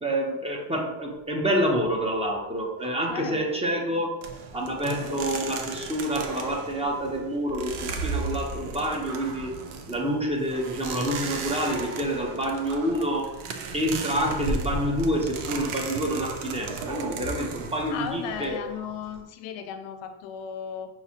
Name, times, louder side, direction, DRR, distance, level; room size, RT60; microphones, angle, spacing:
voice 1, 0.0-4.1 4.5-9.5 9.9-13.3 13.7-18.6, equal, 10° right, 0 dB, 0.8 m, -27 dB
voice 2, 2.8-3.4 17.9-20.9, left 8 dB, 85° left, 7 dB, 0.7 m, -36 dB
sound 1, 4.2-19.2, right 4 dB, 85° right, 0.7 m, -35 dB
5.7 x 2.8 x 2.8 m, 1.0 s
cardioid pair, 100°, 49 cm